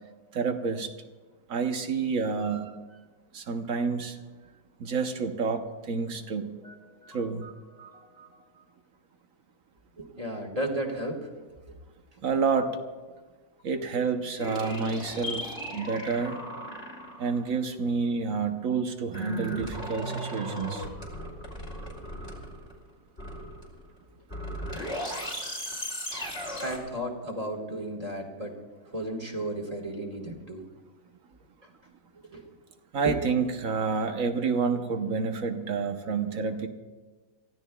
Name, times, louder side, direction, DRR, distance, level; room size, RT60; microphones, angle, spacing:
voice 1, 0.3-0.9 1.5-2.8 3.3-4.2 4.8-6.6 7.1-7.5 12.2-12.8 13.6-16.4 17.2-20.9 32.9-36.7, right 5 dB, 65° right, 6 dB, 1.3 m, -29 dB
voice 2, 6.6-8.6 10.0-11.3 26.6-28.6 28.9-30.6 31.6-31.7 32.3-32.4 33.0-33.2, right 1 dB, 25° right, 1 dB, 1.7 m, -35 dB
sound 1, 14.4-17.4 19.1-22.8 23.2-23.8 24.3-26.8, equal, 45° left, 3.3 m, -36 dB
28.5 x 15.0 x 2.3 m, 1.3 s
omnidirectional pair, 1.5 m